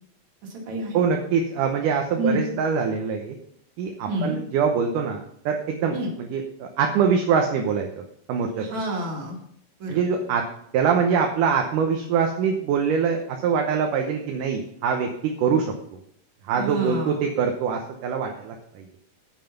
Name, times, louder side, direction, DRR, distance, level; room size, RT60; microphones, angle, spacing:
voice 1, 0.4-1.0 2.2-2.4 4.1-4.4 5.9-6.1 8.6-9.4 9.8-10.0 16.5-17.2, right 1 dB, 55° right, 0 dB, 3.3 m, -28 dB
voice 2, 0.9-3.4 3.8-8.7 9.9-10.4 10.7-16.0 16.5-18.9, right 6 dB, 70° right, 3 dB, 2.4 m, -24 dB
9.2 x 7.3 x 5.8 m, 0.69 s
omnidirectional pair, 4.1 m